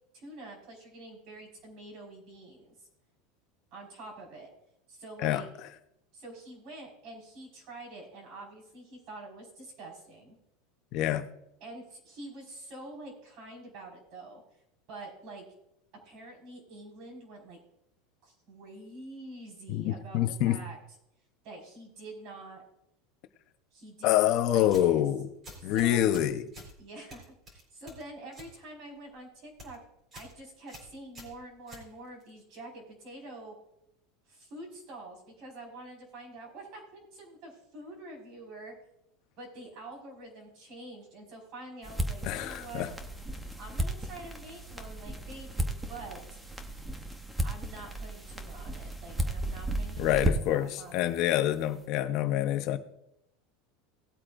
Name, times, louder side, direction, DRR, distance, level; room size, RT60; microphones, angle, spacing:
voice 1, 0.1-2.9 3.7-4.5 4.9-5.5 6.1-10.4 11.6-14.4 14.9-15.4 16.0-17.6 18.2-20.8 21.4-22.6 23.7-25.0 25.6-26.0 26.8-29.8 30.1-33.6 34.3-38.7 39.4-42.9 43.6-46.4 47.4-51.1, right 2 dB, 45° right, 5.1 m, -46 dB
voice 2, 10.9-11.3 19.7-20.6 24.0-25.3 25.6-26.4 42.2-42.9 50.0-52.8, left 12 dB, 45° left, 0.9 m, -26 dB
sound 1, 24.6-25.0 25.4-26.7 27.1-28.5 28.9-29.2 29.5-29.8 30.1-30.3 30.7-32.3, equal, 20° right, 4.1 m, -49 dB
sound 2, 41.8-50.7, right 1 dB, 5° right, 1.0 m, -34 dB
19.0 x 8.4 x 2.6 m
supercardioid pair, 160°, 0 cm